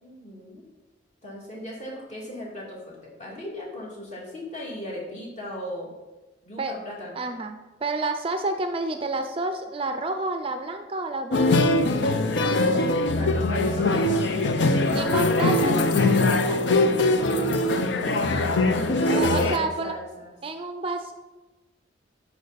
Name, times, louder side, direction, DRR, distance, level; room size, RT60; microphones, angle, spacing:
voice 1, 0.0-0.6 1.2-5.9 6.4-7.3 12.4-15.4 18.0-20.3, left 1 dB, 40° left, -4 dB, 2.3 m, -37 dB
voice 2, 7.2-11.9 14.9-17.0 19.1-20.0 20.4-21.1, right 2 dB, 30° right, 7 dB, 0.4 m, -30 dB
sound 1, 11.3-19.6, left 2 dB, 70° left, 0.6 m, -22 dB
12.0 x 4.7 x 4.0 m, 1.2 s
head